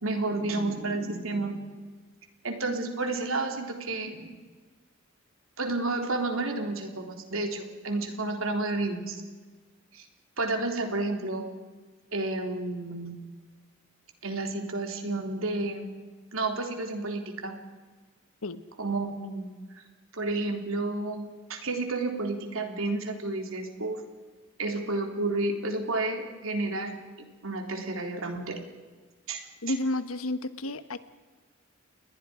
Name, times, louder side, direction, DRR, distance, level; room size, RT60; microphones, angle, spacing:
voice 1, 0.0-1.6 2.4-4.3 5.6-9.2 9.9-10.0 10.4-11.4 12.1-13.2 14.2-15.9 16.3-17.6 18.8-19.5 20.1-24.0 24.6-28.6 29.3-29.5, right 2 dB, 70° right, 4 dB, 3.4 m, -31 dB
voice 2, 29.6-31.0, left 1 dB, 80° left, 12 dB, 1.3 m, -31 dB
29.5 x 21.0 x 5.1 m, 1.4 s
head